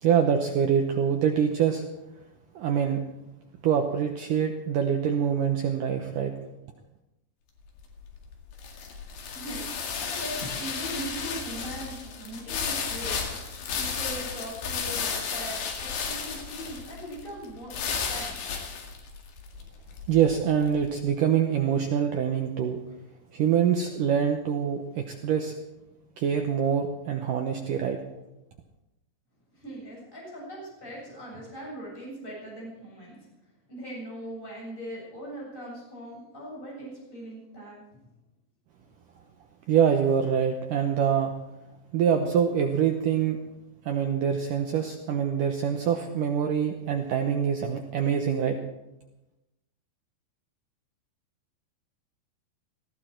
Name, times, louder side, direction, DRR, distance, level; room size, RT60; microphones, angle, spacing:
voice 1, 0.0-1.8 2.6-3.0 3.6-6.3 20.1-22.8 23.3-25.6 26.2-28.0 39.7-41.3 41.9-43.4 43.9-48.6, right 8 dB, 70° right, 4 dB, 2.0 m, -25 dB
sound 1, 7.6-20.9, left 6 dB, 85° left, 4.4 m, -34 dB
voice 2, 9.1-18.6 29.5-33.3 33.7-37.9, right 1 dB, 10° left, -4 dB, 7.5 m, -40 dB
18.5 x 15.5 x 4.5 m, 0.96 s
omnidirectional pair, 5.0 m